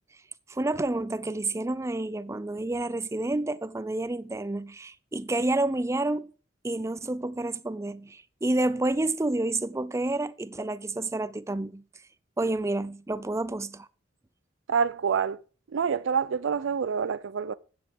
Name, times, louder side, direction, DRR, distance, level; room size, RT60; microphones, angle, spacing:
voice 1, 0.5-6.3 6.6-11.8 12.4-13.9, right 2 dB, 15° right, 0.5 m, -29 dB
voice 2, 14.7-15.4 15.7-17.5, right 6 dB, 70° right, 0.4 m, -27 dB
9.1 x 7.9 x 4.7 m
head